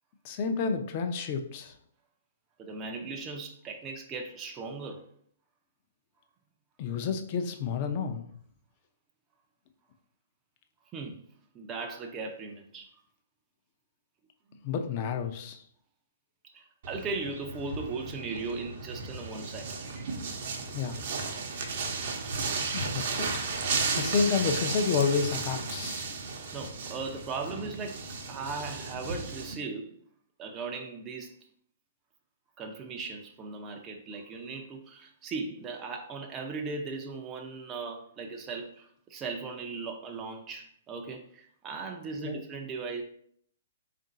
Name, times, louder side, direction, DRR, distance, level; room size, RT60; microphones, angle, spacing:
voice 1, 0.2-1.7 6.8-8.3 14.6-15.6 20.7-21.0 22.7-26.1 42.2-42.4, left 5 dB, 40° left, 6 dB, 0.5 m, -30 dB
voice 2, 2.6-5.0 10.9-11.2 11.5-12.9 14.5-14.7 16.5-19.8 26.5-28.0 28.3-29.9 30.4-31.3 32.6-43.0, right 4 dB, 25° right, 2 dB, 0.5 m, -38 dB
sound 1, 16.8-29.5, right 4 dB, 55° right, 0.8 m, -34 dB
3.6 x 2.5 x 3.9 m, 0.64 s
hypercardioid pair, 125°, 0 cm